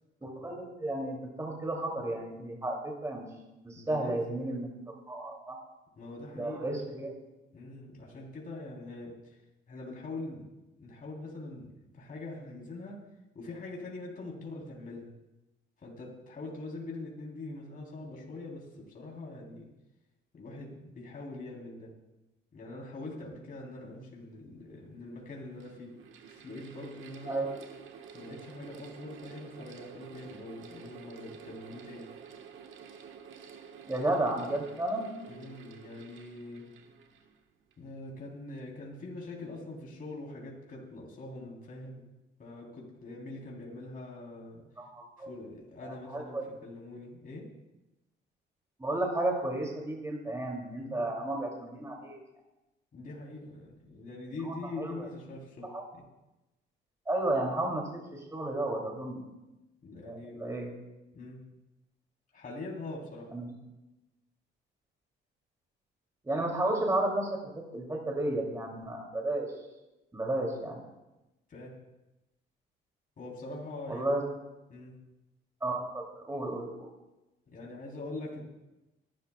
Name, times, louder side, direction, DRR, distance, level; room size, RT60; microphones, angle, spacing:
voice 1, 0.2-3.3 3.6-5.6 6.3-7.2 27.3-27.5 33.9-35.1 44.8-45.3 45.8-46.5 48.8-52.2 54.3-55.1 55.6-55.8 57.1-57.8 58.1-59.2 60.1-60.7 63.3-63.5 66.2-67.3 67.7-69.5 70.1-70.8 73.9-74.3 75.6-76.9, right 1 dB, 15° right, -1 dB, 2.8 m, -33 dB
voice 2, 3.7-4.2 6.0-7.0 7.5-9.4 9.7-10.5 10.8-13.0 13.3-15.1 15.8-19.7 20.3-21.9 22.5-26.0 26.3-27.4 28.1-32.1 35.3-36.7 37.8-42.0 42.4-44.6 45.2-47.5 50.7-51.1 52.9-56.0 59.8-60.6 61.1-61.4 62.3-63.3 71.5-71.7 73.2-74.2 74.7-75.0 77.5-78.4, left 2 dB, 45° left, -2 dB, 3.6 m, -43 dB
Mechanical fan, 24.3-24.4 25.2-37.9, right 7 dB, 80° right, 1.4 m, -50 dB
24.0 x 12.0 x 2.4 m, 0.98 s
cardioid pair, 90°, 20 cm